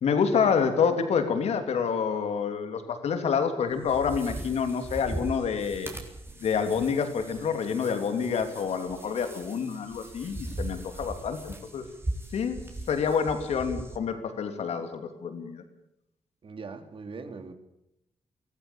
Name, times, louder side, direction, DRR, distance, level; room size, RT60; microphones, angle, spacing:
voice 1, 0.0-5.9 6.4-11.8 12.3-12.6 12.9-15.6, left 6 dB, 80° left, 8 dB, 3.0 m, -27 dB
sound 1, 3.7-14.0, right 1 dB, 20° right, 3.9 m, -39 dB
voice 2, 16.4-17.5, right 4 dB, 55° right, 8 dB, 2.9 m, -40 dB
23.5 x 15.0 x 8.6 m, 0.84 s
cardioid pair, 85°, 11 cm